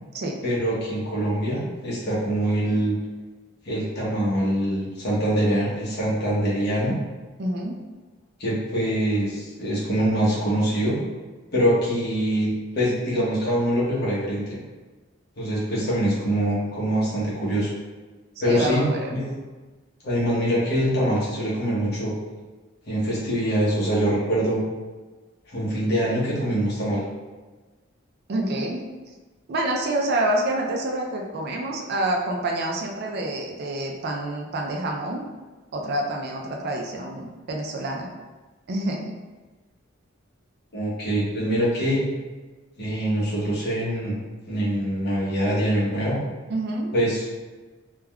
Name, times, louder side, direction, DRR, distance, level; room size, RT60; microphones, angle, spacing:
voice 1, 0.4-3.0 3.6-7.0 8.4-11.0 11.5-14.6 15.4-17.7 18.4-18.9 19.1-19.3 20.0-22.1 22.9-24.6 25.5-27.0 40.7-42.0 42.8-44.2 44.4-46.2 46.9-47.3, equal, 55° left, -6 dB, 0.9 m, -24 dB
voice 2, 7.4-7.8 18.4-19.1 28.3-28.8 29.5-35.2 35.7-38.1 38.7-39.1 46.5-46.9, right 1 dB, 55° right, 1 dB, 0.4 m, -27 dB
3.4 x 2.2 x 2.2 m, 1.3 s
head